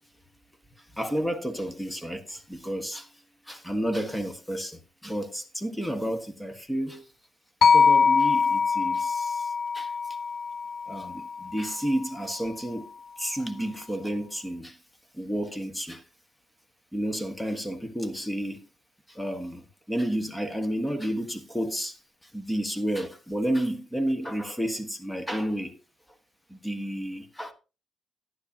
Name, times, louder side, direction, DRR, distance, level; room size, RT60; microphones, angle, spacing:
voice 1, 0.8-3.1 3.5-7.0 7.7-9.9 10.9-12.9 13.2-14.8 15.1-16.0 16.9-18.7 19.1-22.0 22.2-25.8 26.5-27.5, equal, 5° left, 1.4 m, -31 dB
sound 1, 7.6-11.8, left 5 dB, 55° left, 0.4 m, -23 dB
11.5 x 9.8 x 2.8 m
cardioid pair, 90°, 0 cm